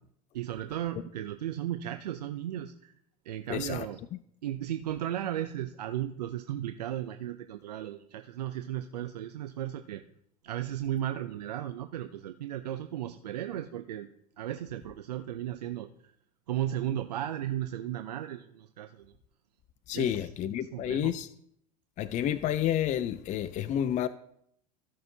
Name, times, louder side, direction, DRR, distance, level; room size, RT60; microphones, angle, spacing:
voice 1, 0.3-2.9 3.3-4.0 4.4-10.0 10.4-15.9 16.5-19.1 19.9-20.3 20.6-21.1, right 12 dB, 85° right, 0.6 m, -35 dB
voice 2, 3.5-3.9 19.9-21.3 22.0-24.1, left 10 dB, 40° left, 0.5 m, -30 dB
15.5 x 6.3 x 2.8 m
hypercardioid pair, 85°, 20 cm